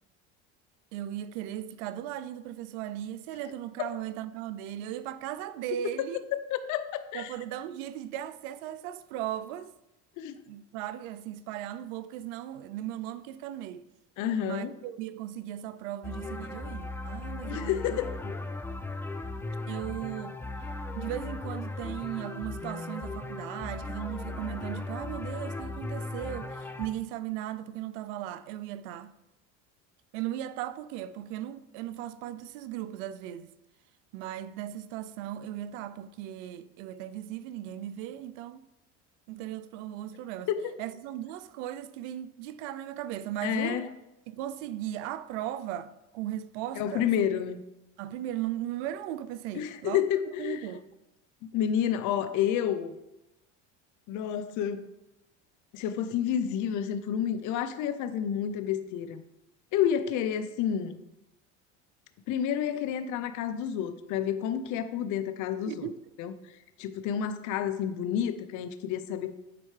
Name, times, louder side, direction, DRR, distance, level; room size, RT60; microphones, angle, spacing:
voice 1, 0.9-6.2 7.1-9.7 10.5-13.9 14.4-18.0 19.7-20.4 21.0-29.1 30.1-33.5 34.1-38.6 39.3-40.5 40.8-43.9 44.3-47.4 48.0-50.0 50.4-50.9 65.7-66.0, right 12 dB, 80° right, 0.5 m, -37 dB
voice 2, 6.5-7.3 10.2-10.4 14.2-14.7 17.5-18.2 40.5-40.6 43.4-43.9 46.8-47.6 49.5-50.6 51.5-52.9 54.1-54.8 55.7-59.2 59.7-61.0 62.3-65.9 66.2-66.3 66.8-69.4, left 9 dB, 55° left, 0.7 m, -30 dB
sound 1, 16.0-26.9, left 2 dB, 5° left, 0.4 m, -37 dB
9.7 x 4.3 x 3.3 m
supercardioid pair, 100°, 36 cm